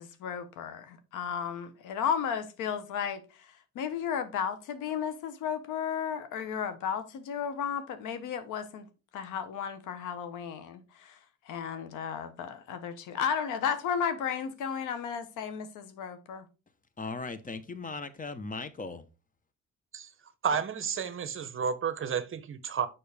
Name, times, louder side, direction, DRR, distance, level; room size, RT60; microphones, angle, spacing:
voice 1, 0.0-8.9 9.1-11.2 11.5-16.5, left 7 dB, 90° left, 1.0 m, -34 dB
voice 2, 17.0-19.0, left 3 dB, 25° left, 1.0 m, -38 dB
voice 3, 20.4-22.9, right 7 dB, 45° right, 0.9 m, -31 dB
6.9 x 5.4 x 3.5 m
cardioid pair, 90°, 30 cm